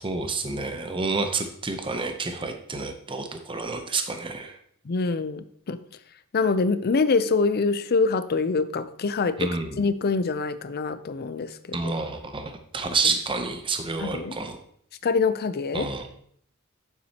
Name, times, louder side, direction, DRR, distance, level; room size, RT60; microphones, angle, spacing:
voice 1, 0.0-4.6 9.4-9.8 11.7-14.6 15.7-16.1, right 4 dB, 25° right, 6 dB, 0.7 m, -29 dB
voice 2, 4.9-5.8 6.3-9.5 9.8-11.9 14.0-14.4 15.0-15.9, left 4 dB, 45° left, 13 dB, 0.5 m, -25 dB
9.4 x 7.2 x 2.9 m, 0.65 s
head